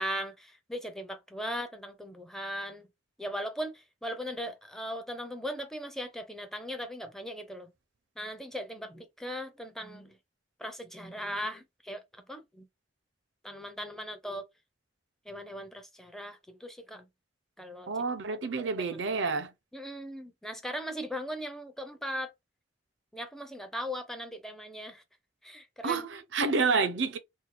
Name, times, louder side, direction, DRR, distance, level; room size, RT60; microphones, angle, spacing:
voice 1, 0.0-2.9 3.2-7.7 8.2-10.2 10.6-12.0 12.3-12.7 13.4-14.4 15.3-17.1 17.6-17.9 18.6-18.7 19.7-22.3 23.1-25.0 25.4-26.0, equal, ahead, 0.5 m, -38 dB
voice 2, 17.9-19.5 25.8-27.2, right 4 dB, 90° right, 0.6 m, -29 dB
2.7 x 2.2 x 4.1 m
head